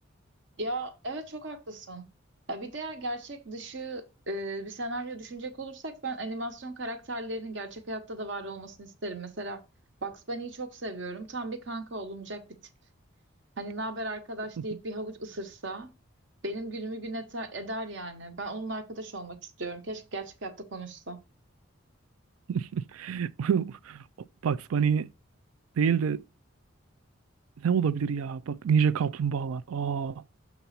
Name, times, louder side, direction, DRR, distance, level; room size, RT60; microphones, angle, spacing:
voice 1, 0.6-2.1 2.5-9.6 10.0-12.4 13.6-15.9 16.4-21.2, right 2 dB, 60° right, 1.0 m, -36 dB
voice 2, 22.5-24.0 24.4-25.1 25.8-26.2 27.6-30.2, right 7 dB, 90° right, 0.4 m, -27 dB
6.9 x 3.0 x 5.7 m
head